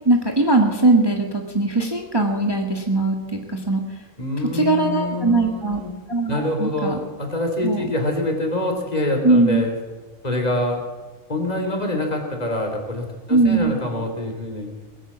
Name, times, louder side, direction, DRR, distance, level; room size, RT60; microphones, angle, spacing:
voice 1, 0.0-4.0 4.5-5.8 6.1-7.0 7.6-7.9 9.2-9.7 13.3-13.8, right 2 dB, 15° right, 2 dB, 1.5 m, -20 dB
voice 2, 4.2-5.9 6.3-9.7 10.2-10.8 11.3-14.7, left 1 dB, 25° left, 3 dB, 3.1 m, -25 dB
21.5 x 9.3 x 7.3 m, 1.3 s
omnidirectional pair, 1.6 m